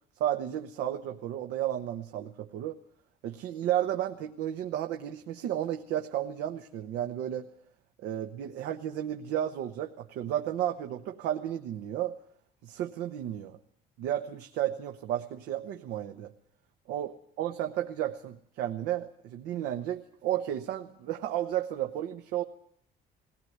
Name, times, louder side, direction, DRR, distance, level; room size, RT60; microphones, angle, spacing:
voice 1, 0.2-2.8 3.2-7.5 8.0-12.2 12.6-13.6 14.0-16.3 16.9-22.4, right 11 dB, 90° right, 6 dB, 1.1 m, -33 dB
20.0 x 18.0 x 9.5 m, 0.65 s
cardioid pair, 110°, 17 cm